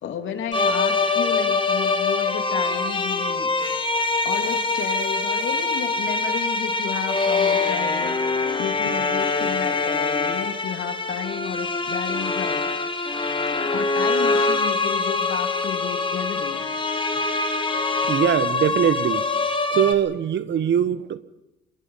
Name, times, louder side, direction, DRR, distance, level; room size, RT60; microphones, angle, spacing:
voice 1, 0.0-3.5 4.2-13.4 13.7-16.7, left 8 dB, 75° left, 6 dB, 3.0 m, -32 dB
sound 1, 0.5-19.9, left 3 dB, 25° left, 2.4 m, -24 dB
voice 2, 18.0-19.3 19.7-21.2, right 9 dB, 65° right, 14 dB, 1.4 m, -22 dB
26.5 x 22.5 x 5.7 m, 0.97 s
cardioid pair, 90°, 20 cm